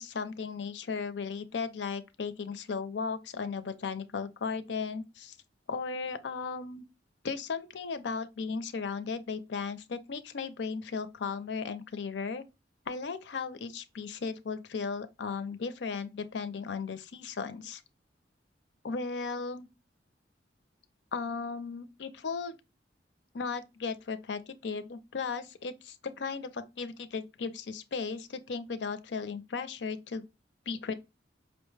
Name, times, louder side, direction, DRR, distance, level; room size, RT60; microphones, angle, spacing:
voice 1, 0.0-5.4 5.7-6.8 7.2-12.4 12.9-17.8 18.8-19.7 21.1-22.6 23.3-30.2 30.7-30.9, left 5 dB, 75° left, 0.5 m, -36 dB
5.1 x 2.1 x 3.1 m
head